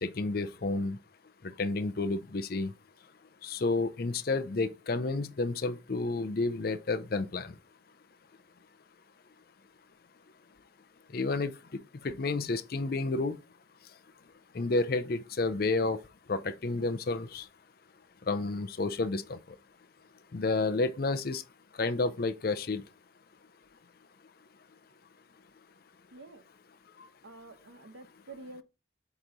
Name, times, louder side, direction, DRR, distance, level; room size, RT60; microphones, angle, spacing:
voice 1, 0.0-1.0 1.4-2.7 3.4-7.5 11.1-11.5 12.0-13.4 14.5-16.0 16.3-17.5 18.3-19.4 20.3-21.4 21.8-22.8 27.0-27.1, left 3 dB, 50° left, 0.5 m, -30 dB
voice 2, 26.1-26.5 27.2-28.6, right 2 dB, 85° right, 1.0 m, -48 dB
8.0 x 3.1 x 3.9 m
head